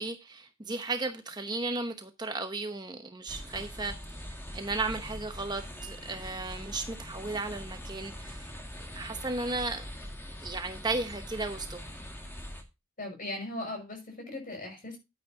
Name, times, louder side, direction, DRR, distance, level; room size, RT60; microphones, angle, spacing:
voice 1, 0.0-4.2 4.5-8.6 8.9-9.8 10.4-11.9, right 3 dB, 20° right, 0.9 m, -35 dB
sound 1, 3.3-12.6, equal, 10° left, 2.0 m, -42 dB
voice 2, 13.0-15.0, left 1 dB, 40° left, 6.0 m, -38 dB
11.5 x 9.4 x 2.8 m
head